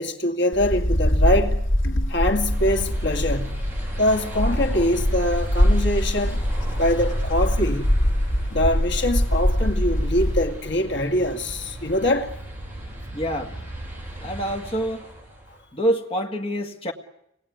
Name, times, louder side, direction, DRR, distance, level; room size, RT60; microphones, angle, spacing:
voice 1, 0.0-1.6 2.1-3.6 4.0-6.4 6.8-7.9 8.5-12.3, left 1 dB, 65° left, 2.3 m, -23 dB
Wind, 0.5-10.5, equal, 80° left, 1.9 m, -23 dB
sound 1, 2.1-15.6, right 1 dB, 10° right, 6.5 m, -36 dB
voice 2, 13.1-13.5 14.2-15.1 15.7-16.9, right 1 dB, 30° left, 1.8 m, -26 dB
27.5 x 19.0 x 9.6 m
head